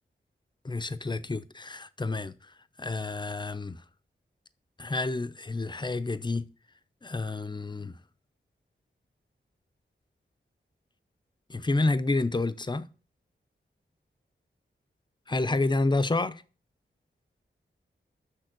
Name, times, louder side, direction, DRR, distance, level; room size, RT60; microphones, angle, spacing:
voice 1, 0.6-2.3 2.8-3.8 4.8-6.5 7.0-8.0 11.5-12.9 15.3-16.4, left 2 dB, 20° left, 0.7 m, -29 dB
6.5 x 6.1 x 6.1 m
cardioid pair, 55°, 20 cm